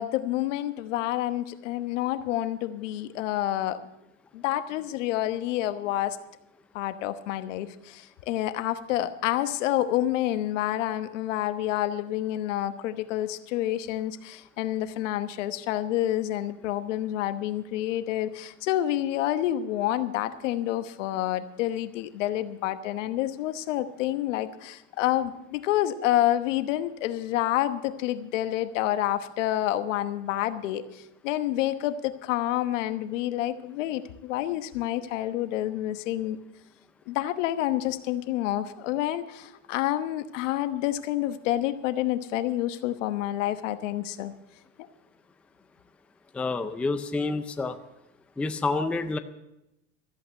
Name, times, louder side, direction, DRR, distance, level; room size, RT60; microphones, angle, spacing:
voice 1, 0.0-3.8 4.3-6.2 6.7-36.4 37.1-44.3, left 13 dB, 85° left, 11 dB, 1.1 m, -28 dB
voice 2, 46.3-47.8 48.4-49.2, left 3 dB, 5° left, 9 dB, 0.4 m, -28 dB
13.5 x 8.5 x 7.7 m, 0.90 s
supercardioid pair, 140°, 36 cm